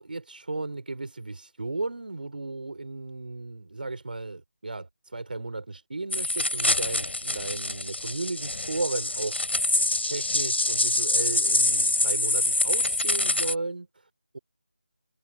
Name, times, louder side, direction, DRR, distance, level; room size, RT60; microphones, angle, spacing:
voice 1, 0.0-9.4 9.7-14.4, right 2 dB, 55° right, 3.7 m, -35 dB
sound 1, 6.1-13.5, left 2 dB, 90° left, 5.1 m, -25 dB
figure-of-eight pair, 175°, 6 cm